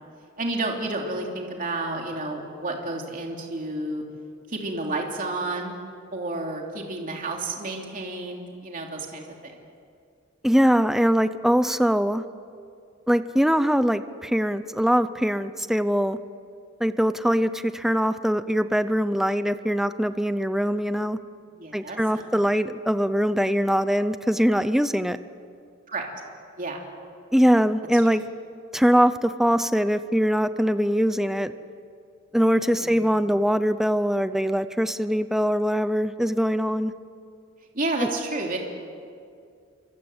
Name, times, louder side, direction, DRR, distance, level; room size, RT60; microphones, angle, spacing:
voice 1, 0.4-4.0 4.5-5.7 6.1-9.5 21.6-22.5 25.9-26.1 26.6-26.8 27.9-28.0 32.8-33.1 37.7-38.6, right 2 dB, 40° right, 1 dB, 3.1 m, -31 dB
voice 2, 10.4-12.2 13.1-16.2 16.8-21.2 21.7-25.2 27.3-28.2 28.7-31.5 32.3-36.9, equal, ahead, 12 dB, 0.6 m, -22 dB
28.5 x 25.5 x 8.0 m, 2.3 s
head